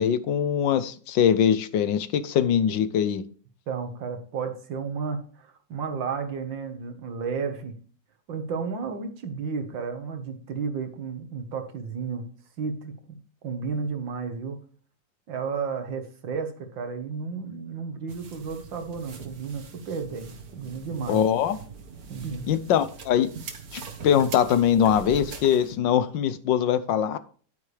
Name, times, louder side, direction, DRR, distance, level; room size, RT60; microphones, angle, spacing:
voice 1, 0.0-3.2 21.1-21.6 22.5-23.3 23.7-27.2, left 9 dB, 80° left, 14 dB, 1.5 m, -22 dB
voice 2, 3.7-7.7 8.3-12.3 12.6-13.2 13.4-14.6 15.3-21.2 22.1-22.5, right 5 dB, 90° right, 6 dB, 2.2 m, -32 dB
sound 1, 18.1-25.7, right 5 dB, 55° right, 1.8 m, -42 dB
10.5 x 9.4 x 3.4 m, 0.43 s
omnidirectional pair, 2.0 m